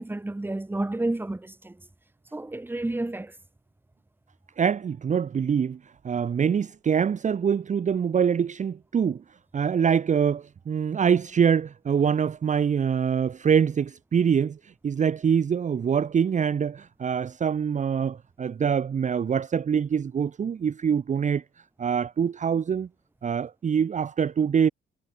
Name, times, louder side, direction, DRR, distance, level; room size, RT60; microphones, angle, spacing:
voice 1, 0.0-1.8 2.3-3.3, right 2 dB, 10° right, 1.6 m, -30 dB
voice 2, 4.6-9.2 9.5-21.4 21.8-22.9 23.2-24.7, right 7 dB, 40° right, 0.8 m, -24 dB
cardioid pair, 90°, 20 cm